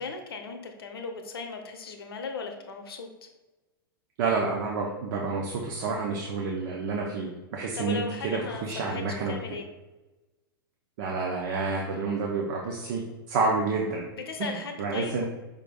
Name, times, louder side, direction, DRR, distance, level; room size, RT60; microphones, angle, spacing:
voice 1, 0.0-3.1 7.7-9.7 14.1-15.2, left 4 dB, 80° left, 5 dB, 0.7 m, -37 dB
voice 2, 4.2-9.4 11.0-13.0 13.3-14.1 14.8-15.2, right 4 dB, 60° right, -1 dB, 0.6 m, -29 dB
5.0 x 3.3 x 2.2 m, 1.1 s
hypercardioid pair, 105°, 12 cm